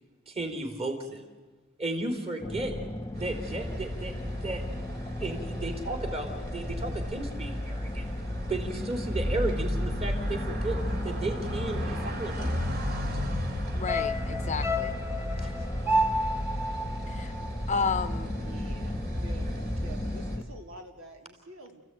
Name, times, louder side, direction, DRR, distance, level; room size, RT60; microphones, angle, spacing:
voice 1, 0.3-1.3 1.8-2.7 3.2-4.6 5.2-8.1 8.5-10.8 11.0-12.5 12.8-12.9 15.4-15.5, right 2 dB, 30° right, 4 dB, 3.8 m, -34 dB
sound 1, 2.4-20.4, left 1 dB, 15° left, 1.3 m, -38 dB
sound 2, 3.1-20.4, left 1 dB, 50° right, 3.4 m, -34 dB
voice 2, 13.7-15.0 17.1-17.3 17.7-18.3, left 5 dB, 35° left, 12 dB, 0.9 m, -31 dB
sound 3, 13.9-18.3 18.6-18.7, equal, 10° right, 1.2 m, -31 dB
voice 3, 18.2-21.8, right 1 dB, 80° right, 3 dB, 3.1 m, -48 dB
29.5 x 15.5 x 9.3 m, 1.3 s
head